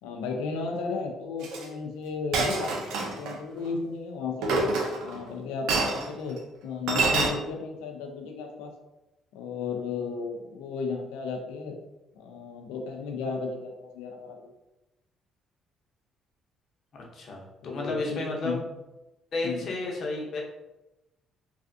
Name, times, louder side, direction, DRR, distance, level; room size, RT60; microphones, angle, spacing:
voice 1, 0.0-4.6 5.0-8.7 9.3-11.8 12.1-14.5 17.6-18.6 19.4-19.7, left 4 dB, 90° left, 3 dB, 0.5 m, -34 dB
Chink clink, 1.4-1.6 2.3-3.3 4.4-5.2 5.7-6.1 6.9-7.3, right 3 dB, 80° right, 0.5 m, -26 dB
voice 2, 16.9-18.6 19.3-20.4, left 2 dB, 60° left, -1 dB, 0.8 m, -32 dB
3.3 x 2.4 x 2.6 m, 0.98 s
supercardioid pair, 75°, 0 cm